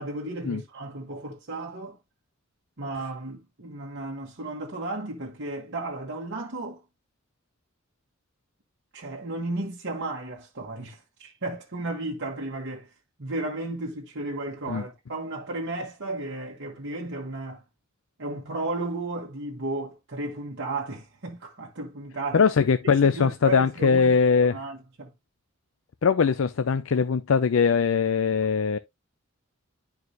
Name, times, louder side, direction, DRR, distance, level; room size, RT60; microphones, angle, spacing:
voice 1, 0.0-2.0 2.8-6.8 8.9-12.9 13.2-17.6 18.2-22.4 23.0-25.1, right 2 dB, 60° right, 1.3 m, -34 dB
voice 2, 22.3-24.6 26.0-28.8, left 5 dB, 65° left, 0.5 m, -21 dB
11.0 x 4.7 x 2.6 m
head